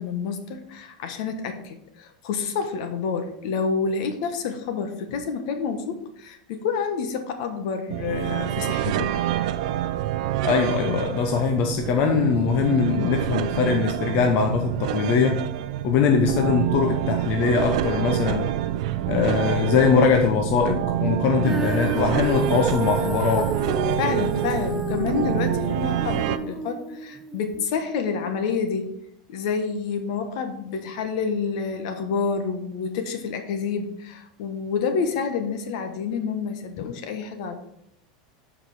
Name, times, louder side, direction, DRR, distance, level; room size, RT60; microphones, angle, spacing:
voice 1, 0.0-9.1 21.2-21.5 23.9-28.9 29.3-37.6, left 5 dB, 70° left, 7 dB, 1.2 m, -28 dB
sound 1, 7.9-26.4, right 12 dB, 70° right, 0.5 m, -27 dB
voice 2, 10.4-15.5 15.8-18.5 19.0-23.5 36.8-36.9, left 6 dB, 50° left, 3 dB, 0.8 m, -22 dB
Female singing, 21.4-27.7, right 2 dB, 10° right, 0.7 m, -31 dB
7.9 x 4.9 x 4.8 m, 0.76 s
supercardioid pair, 135°, 4 cm